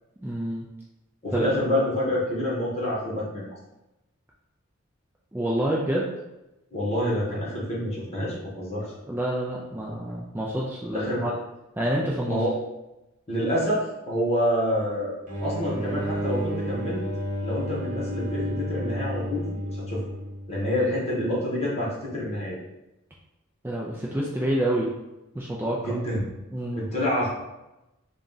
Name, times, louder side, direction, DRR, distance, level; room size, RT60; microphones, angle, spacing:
voice 1, 0.2-0.6 1.3-1.5 5.3-6.1 9.0-11.3 11.8-12.4 23.6-24.9 25.3-26.0 26.5-26.9, right 1 dB, 10° right, -4 dB, 0.4 m, -28 dB
voice 2, 1.2-3.4 6.7-8.8 10.9-11.3 12.2-12.5 13.3-17.0 17.4-19.6 19.9-20.0 20.5-22.6 25.8-26.2 26.7-27.3, equal, 30° left, -6 dB, 1.2 m, -27 dB
sound 1, 15.3-20.6, equal, 40° right, 1.0 m, -31 dB
3.9 x 2.4 x 3.9 m, 0.97 s
head